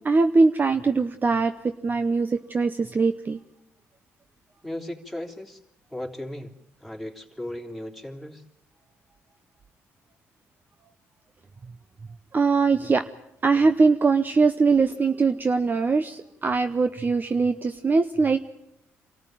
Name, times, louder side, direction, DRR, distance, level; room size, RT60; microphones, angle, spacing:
voice 1, 0.0-3.4 12.3-13.1 13.4-18.5, right 4 dB, 35° right, 9 dB, 0.8 m, -22 dB
voice 2, 4.6-5.6 5.9-6.5 6.8-8.4, left 1 dB, ahead, 2 dB, 3.4 m, -36 dB
25.0 x 14.5 x 9.2 m, 0.86 s
supercardioid pair, 65°, 6 cm